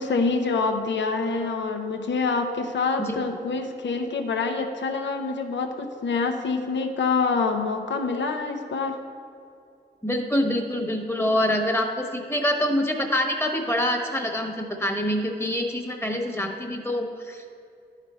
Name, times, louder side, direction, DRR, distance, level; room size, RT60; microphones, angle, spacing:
voice 1, 0.0-9.0, left 4 dB, 90° left, 5 dB, 0.7 m, -26 dB
voice 2, 10.0-17.5, left 1 dB, 15° left, 3 dB, 1.1 m, -25 dB
11.0 x 5.0 x 4.3 m, 2.5 s
cardioid pair, 60°, 18 cm